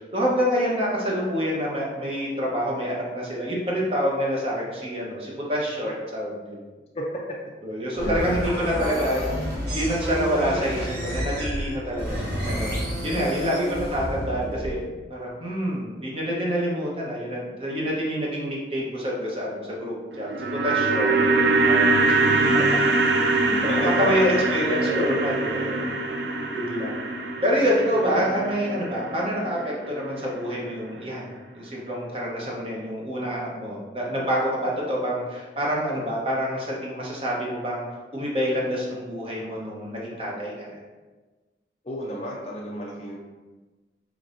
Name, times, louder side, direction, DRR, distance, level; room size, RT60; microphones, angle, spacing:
voice 1, 0.0-6.6 7.6-9.4 9.7-12.7 13.0-14.8 15.1-22.6 24.0-26.0 26.5-27.0 27.4-31.3 31.5-37.8 38.1-40.8, equal, 30° right, -4 dB, 0.9 m, -27 dB
sound 1, 7.9-14.9, equal, 65° right, 1.4 m, -30 dB
voice 2, 13.1-13.6 21.0-21.3 23.4-24.1 24.5-25.1 28.1-28.4 41.8-43.2, equal, 35° left, -4 dB, 0.4 m, -33 dB
sound 2, 20.1-30.4 30.7-30.8, right 3 dB, 85° right, 0.5 m, -23 dB
5.1 x 3.3 x 2.6 m, 1.2 s
head